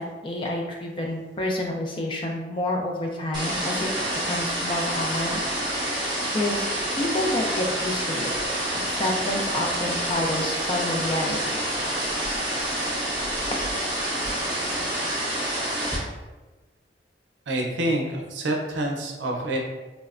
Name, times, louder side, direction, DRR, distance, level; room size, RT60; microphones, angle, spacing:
voice 1, 0.0-3.9 4.2-5.4 6.3-6.7 7.0-8.3 8.8-11.6, left 1 dB, 30° left, 1 dB, 0.3 m, -29 dB
sound 1, 3.3-16.0, right 1 dB, 25° right, 0.6 m, -28 dB
voice 2, 17.5-19.6, right 1 dB, 90° right, 0 dB, 0.5 m, -27 dB
3.1 x 2.0 x 2.4 m, 1.2 s
head